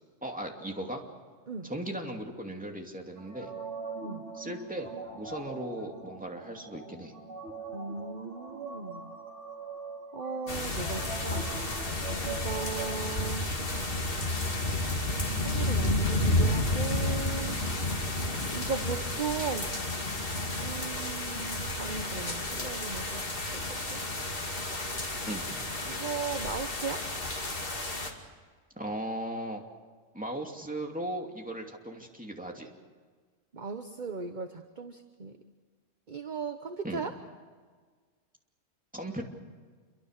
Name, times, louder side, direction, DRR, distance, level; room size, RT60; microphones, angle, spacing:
voice 1, 0.2-1.0 1.6-3.5 4.3-7.1 25.2-25.6 28.8-29.7 30.1-32.7 36.8-37.0 38.9-39.3, right 1 dB, 5° right, 1 dB, 2.6 m, -37 dB
sound 1, 3.2-13.0, right 3 dB, 65° right, 3.4 m, -42 dB
voice 2, 7.7-9.2 10.1-11.5 12.2-13.5 15.3-17.6 18.5-19.7 20.6-24.0 25.9-27.0 33.5-35.4 36.1-37.2, right 5 dB, 40° right, 7 dB, 1.2 m, -37 dB
sound 2, 10.5-28.1, left 1 dB, 45° left, 2.7 m, -31 dB
27.5 x 23.5 x 6.7 m, 1.5 s
omnidirectional pair, 1.3 m